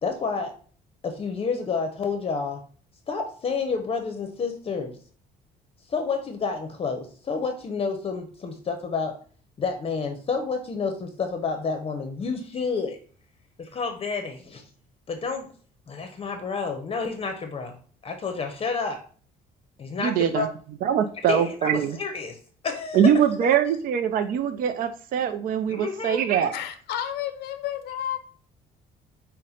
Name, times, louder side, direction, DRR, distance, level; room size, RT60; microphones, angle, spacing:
voice 1, 0.0-0.5 1.0-2.6 3.1-5.0 5.9-9.2 9.6-13.0 13.6-14.6 15.1-15.5 15.9-17.7 18.0-19.0 19.8-20.5 21.3-22.4 22.6-23.1 25.7-26.2, left 5 dB, 35° left, 5 dB, 0.6 m, -29 dB
voice 2, 20.0-20.5 20.8-22.0 22.9-26.5, right 8 dB, 55° right, 9 dB, 0.4 m, -23 dB
voice 3, 26.5-28.2, left 11 dB, 75° left, 8 dB, 0.6 m, -31 dB
5.7 x 2.1 x 3.7 m, 0.44 s
cardioid pair, 110°, 17 cm